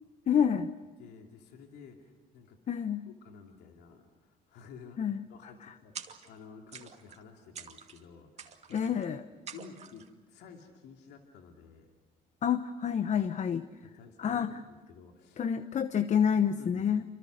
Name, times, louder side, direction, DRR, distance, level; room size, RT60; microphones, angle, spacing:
voice 1, 0.3-0.7 2.7-3.0 5.0-5.7 8.7-9.2 12.4-13.6 14.2-14.6 15.4-17.0, left 8 dB, 45° left, 11 dB, 1.0 m, -28 dB
voice 2, 1.0-2.6 3.2-8.9 9.5-11.9 13.1-13.3 13.8-15.5 16.6-16.9, left 6 dB, 80° left, 2 dB, 2.7 m, -52 dB
sound 1, 6.0-6.4 6.7-7.2 7.6-8.0 8.4-9.1 9.5-10.1, right 7 dB, 40° right, 2.3 m, -47 dB
29.0 x 25.5 x 6.6 m, 1.4 s
cardioid pair, 110°, 17 cm